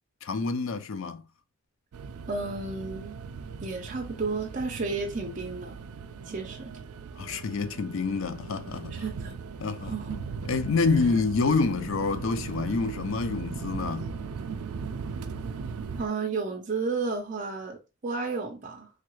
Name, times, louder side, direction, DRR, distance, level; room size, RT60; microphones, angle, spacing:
voice 1, 0.2-1.2 7.2-9.0 9.6-10.0 10.4-14.1, left 4 dB, 60° left, 0.4 m, -27 dB
sound 1, 1.9-16.1, right 5 dB, 85° right, 0.4 m, -38 dB
voice 2, 2.3-3.2 3.6-5.8 6.3-6.7 8.9-9.4 9.8-10.2 16.0-18.9, right 4 dB, 35° right, 0.5 m, -32 dB
3.2 x 2.3 x 3.0 m
head